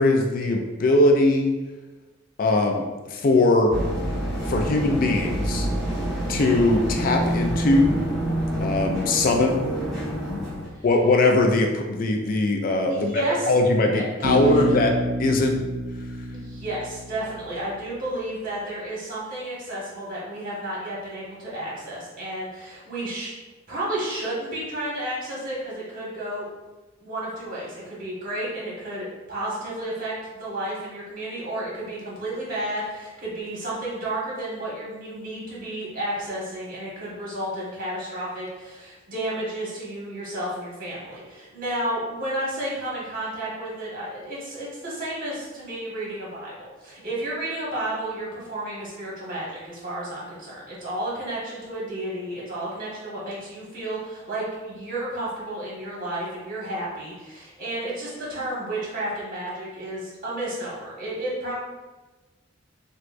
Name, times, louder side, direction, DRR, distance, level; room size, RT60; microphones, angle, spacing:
voice 1, 0.0-1.6 2.4-3.7 4.5-5.7 6.3-7.9 8.6-9.8 10.1-10.4 10.8-14.9 15.2-15.6, left 2 dB, 45° left, 3 dB, 0.4 m, -21 dB
sound 1, 3.7-10.7, right 1 dB, ahead, 1.4 m, -27 dB
voice 2, 12.9-13.5 13.9-14.6 16.3-23.3 23.7-26.5 27.0-61.5, right 1 dB, 45° right, -6 dB, 1.5 m, -32 dB
Bass guitar, 14.2-17.9, equal, 80° right, 0.5 m, -29 dB
6.1 x 2.3 x 2.5 m, 1.2 s
head